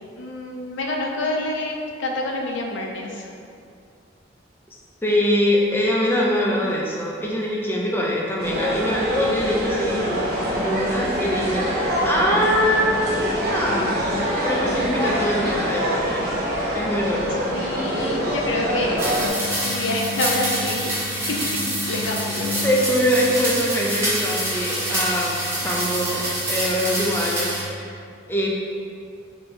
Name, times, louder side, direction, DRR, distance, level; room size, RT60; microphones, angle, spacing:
voice 1, 0.2-3.3 17.5-19.0 19.5-21.4 21.9-22.6, left 1 dB, 75° left, 1 dB, 0.5 m, -27 dB
voice 2, 5.0-10.1 10.6-11.7 12.0-16.3 16.7-17.4 22.6-25.4 25.6-28.0 28.3-28.5, equal, 10° left, -3 dB, 0.4 m, -23 dB
sound 1, 8.4-19.3, equal, 50° right, 0.7 m, -24 dB
sound 2, 10.4-24.0, left 3 dB, 90° left, 1.0 m, -37 dB
sound 3, 19.0-27.6, right 1 dB, 15° right, 0.8 m, -26 dB
4.4 x 2.8 x 3.2 m, 2.4 s
head